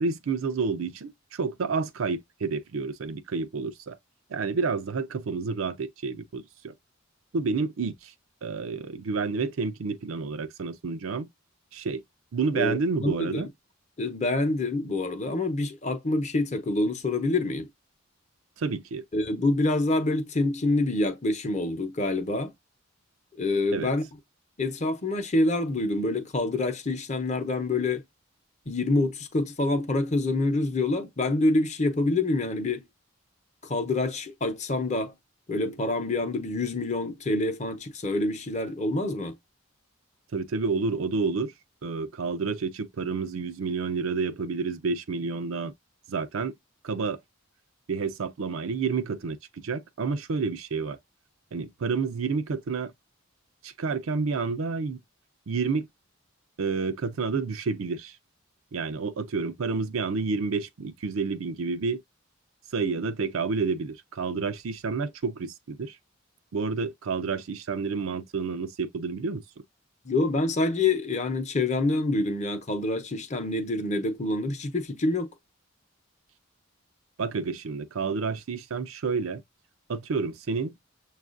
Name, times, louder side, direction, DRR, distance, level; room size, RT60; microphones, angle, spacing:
voice 1, 0.0-4.0 4.3-6.7 7.3-8.1 8.4-11.3 11.7-12.0 12.3-13.5 18.6-19.0 23.7-23.9 40.3-41.5 41.8-45.7 46.1-46.5 46.8-47.2 47.9-51.0 51.5-52.9 53.6-55.0 55.5-55.9 56.6-58.1 58.7-62.0 62.7-66.0 66.5-69.4 77.2-79.4 79.9-80.7, right 4 dB, 80° right, 0.5 m, -29 dB
voice 2, 12.5-13.5 14.0-17.7 19.1-22.5 23.4-24.0 24.6-28.0 28.7-32.9 33.6-35.1 35.5-39.4 70.0-75.3, left 2 dB, 35° left, 0.7 m, -26 dB
6.9 x 2.4 x 2.5 m
head